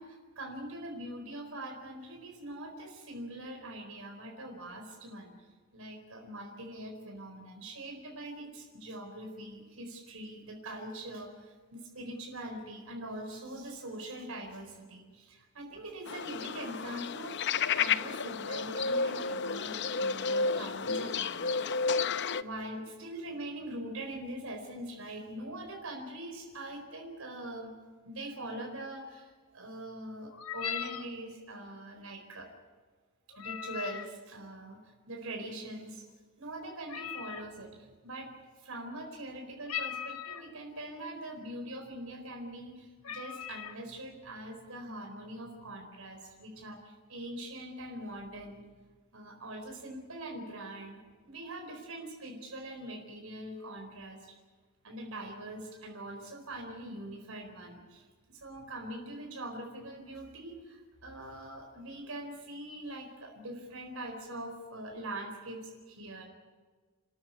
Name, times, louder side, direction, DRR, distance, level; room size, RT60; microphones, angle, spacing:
voice 1, 0.0-5.4 5.7-17.4 17.7-21.6 22.4-27.7 28.0-32.5 33.4-36.1 36.4-48.6 49.1-54.3 54.8-66.2, right 1 dB, 75° right, 2 dB, 4.5 m, -43 dB
sound 1, 16.1-22.4, left 5 dB, 55° left, 0.6 m, -31 dB
sound 2, 30.3-31.1 33.3-34.1 36.9-37.5 39.7-40.5 41.3-41.4 41.8-42.1 42.6-42.7 43.0-43.8, left 9 dB, 85° left, 1.3 m, -39 dB
29.5 x 13.5 x 9.6 m, 1.4 s
head